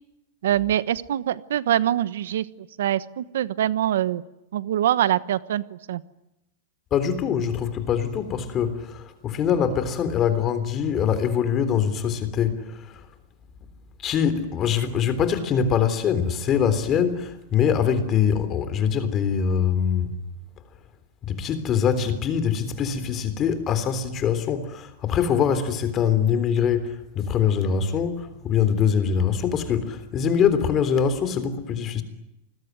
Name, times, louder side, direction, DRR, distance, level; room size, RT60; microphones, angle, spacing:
voice 1, 0.4-4.2 4.5-6.0, right 11 dB, 80° right, 1.2 m, -24 dB
voice 2, 6.9-12.6 14.0-20.1 21.2-32.0, left 7 dB, 25° left, 3.6 m, -23 dB
29.5 x 21.0 x 9.5 m
supercardioid pair, 160°, 0 cm